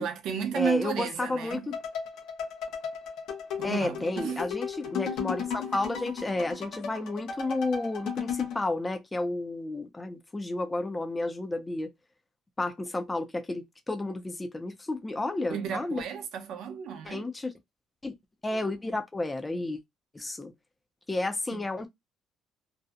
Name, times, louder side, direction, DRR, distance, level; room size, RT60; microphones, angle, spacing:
voice 1, 0.0-1.7 3.6-4.4 4.8-5.2 15.5-17.3 21.5-21.6, right 8 dB, 65° right, 0.5 m, -33 dB
voice 2, 0.5-1.7 3.6-11.9 12.6-16.0 17.0-17.5 18.0-18.1 18.4-19.8 20.1-20.5 21.1-21.9, left 2 dB, 10° left, 0.3 m, -31 dB
sound 1, 1.5-8.6, left 6 dB, 70° left, 0.7 m, -35 dB
2.6 x 2.0 x 2.4 m
cardioid pair, 165°, 0 cm